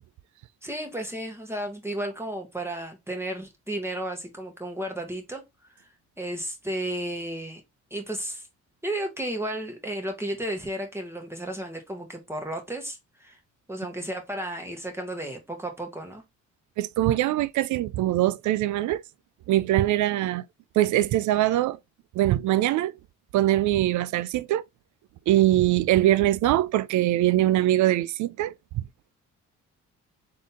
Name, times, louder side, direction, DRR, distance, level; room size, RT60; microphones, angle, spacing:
voice 1, 0.6-5.4 5.7-5.9 6.2-7.6 7.9-8.5 8.8-13.4 13.7-16.2, right 1 dB, 10° right, 1.3 m, -33 dB
voice 2, 16.8-19.0 19.5-20.4 20.8-21.8 22.1-22.9 23.3-24.6 25.3-28.8, right 14 dB, 75° right, 0.5 m, -22 dB
3.7 x 2.8 x 3.5 m
cardioid pair, 90°, 30 cm